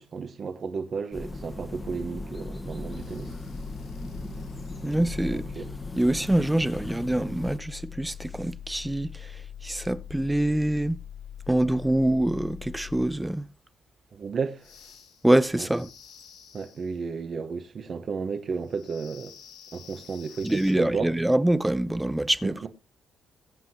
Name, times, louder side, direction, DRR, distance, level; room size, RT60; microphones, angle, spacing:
voice 1, 0.0-3.4 5.3-5.7 14.1-14.8 15.5-15.7 16.5-19.4 19.7-21.1 22.4-22.7, right 5 dB, 50° right, 1.1 m, -33 dB
sound 1, 1.1-7.6, left 2 dB, 20° left, 1.3 m, -37 dB
sound 2, 2.9-13.3 14.5-17.0 18.6-20.7, left 9 dB, 85° left, 7.7 m, -44 dB
voice 2, 4.8-5.4 6.0-11.0 11.5-13.5 15.2-15.9 20.4-22.7, right 1 dB, 10° right, 0.7 m, -25 dB
22.0 x 7.6 x 2.9 m
cardioid pair, 90°, 0 cm